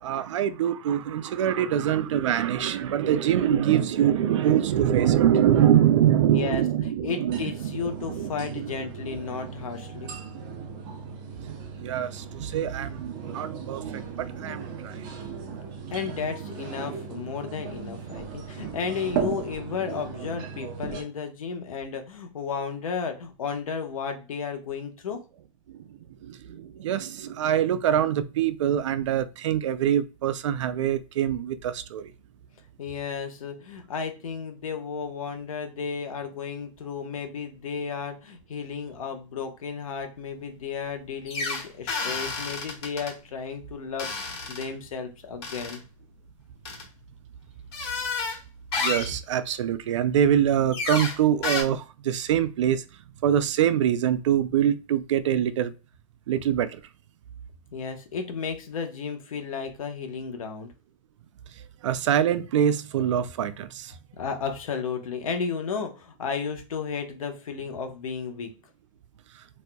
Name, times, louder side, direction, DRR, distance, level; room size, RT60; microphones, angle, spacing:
voice 1, 0.0-8.7 10.2-10.5 11.3-15.7 25.7-25.8 26.2-32.1 48.8-52.8 53.2-55.7 56.3-56.8 61.8-63.9, right 10 dB, 60° right, 0.4 m, -24 dB
voice 2, 6.3-10.1 15.9-25.2 32.8-45.8 57.7-60.7 64.1-68.5, left 6 dB, 75° left, 1.0 m, -33 dB
sound 1, 7.3-21.0, right 6 dB, 25° right, 0.7 m, -37 dB
sound 2, 41.3-43.1 44.0-44.7 45.4-45.8 46.6-46.8 47.7-48.4 48.7-49.2 50.7-51.2 51.4-51.6, left 4 dB, 45° left, 1.5 m, -30 dB
4.2 x 2.6 x 2.2 m
hypercardioid pair, 155°, 18 cm